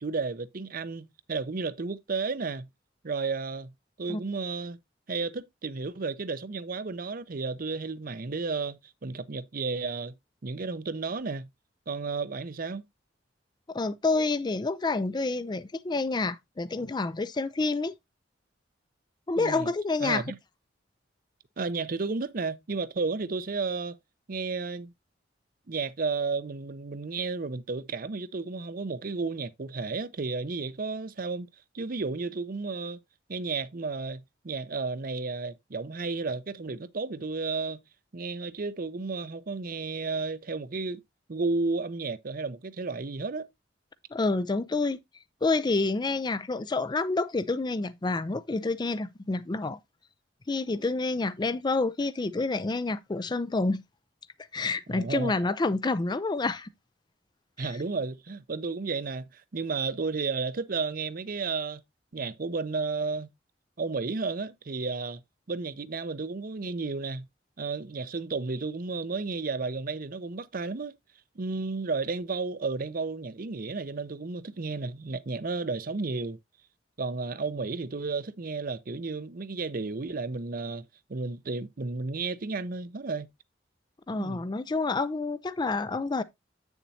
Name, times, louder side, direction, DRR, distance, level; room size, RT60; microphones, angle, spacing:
voice 1, 0.0-2.7 3.0-3.7 4.0-4.8 5.1-10.1 10.4-11.5 11.9-12.8 19.4-19.7 20.0-20.4 21.6-24.0 24.3-24.9 25.7-31.5 31.7-33.0 33.3-37.8 38.1-41.0 41.3-43.5 54.9-55.3 57.6-61.8 62.1-63.3 63.8-65.2 65.5-67.3 67.6-71.0 71.4-76.4 77.0-83.3 84.2-84.4, right 4 dB, 50° right, 0.6 m, -32 dB
voice 2, 13.7-17.9 19.3-20.2 44.1-45.0 45.4-49.8 50.5-53.8 54.5-56.7 57.6-57.7 84.1-86.2, left 3 dB, 25° left, 0.4 m, -28 dB
8.3 x 7.1 x 2.7 m
head